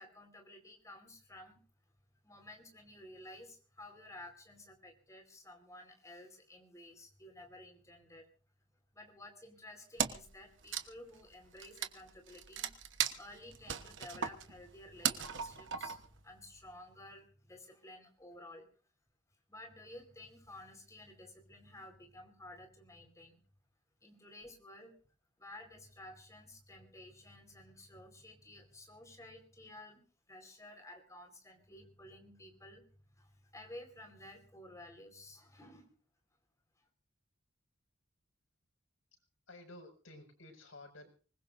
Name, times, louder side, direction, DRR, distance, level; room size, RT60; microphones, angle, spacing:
voice 1, 0.0-1.6 2.2-8.3 8.9-12.7 13.0-18.7 19.5-23.4 24.0-24.9 25.4-32.8 33.1-35.9, left 1 dB, 15° left, 4 dB, 4.5 m, -53 dB
Wood, 10.0-10.3 10.6-16.2, right 8 dB, 65° right, 1.2 m, -37 dB
voice 2, 39.5-41.1, left 2 dB, 85° left, 4 dB, 6.1 m, -53 dB
25.0 x 20.5 x 2.7 m, 0.39 s
head